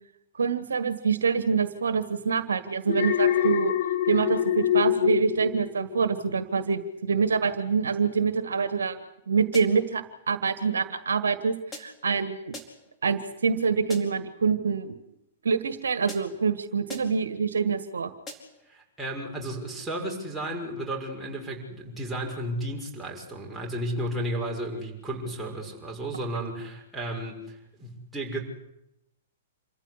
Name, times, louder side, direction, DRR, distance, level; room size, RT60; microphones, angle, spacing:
voice 1, 0.4-3.7 4.0-9.0 9.3-12.6 13.0-14.9 15.4-18.1, right 5 dB, 75° right, 11 dB, 1.7 m, -26 dB
Alarm, 2.9-6.2 6.6-6.9, left 11 dB, 50° left, 1.6 m, -25 dB
sound 1, 9.5-10.0 11.7-12.1 12.5-13.0 13.9-14.3 16.1-16.5 16.9-17.3 18.3-18.7, left 2 dB, 15° left, 4.6 m, -44 dB
voice 2, 18.7-28.4, right 1 dB, 5° right, -2 dB, 6.5 m, -33 dB
27.5 x 14.5 x 9.9 m, 0.87 s
figure-of-eight pair, 110°, 0 cm